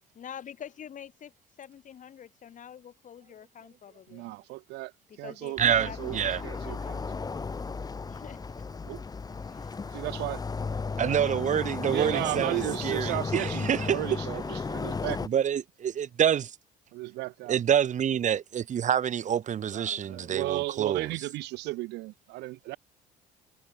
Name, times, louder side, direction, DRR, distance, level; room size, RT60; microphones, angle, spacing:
voice 1, 0.1-1.3 1.6-4.3 5.1-6.7 8.1-8.8 9.5-9.8 19.7-20.3, left 9 dB, 50° left, 3.3 m, -46 dB
voice 2, 4.1-4.9 5.2-7.2 8.8-9.0 9.9-10.4 11.9-15.2 16.9-17.6 19.7-22.8, right 20 dB, 80° right, 2.6 m, -35 dB
sound 1, 5.6-15.3, left 4 dB, 20° left, 1.2 m, -35 dB
voice 3, 5.6-6.4 11.0-14.0 15.2-16.5 17.5-21.1, right 9 dB, 45° right, 1.4 m, -27 dB
cardioid pair, 95°, 17 cm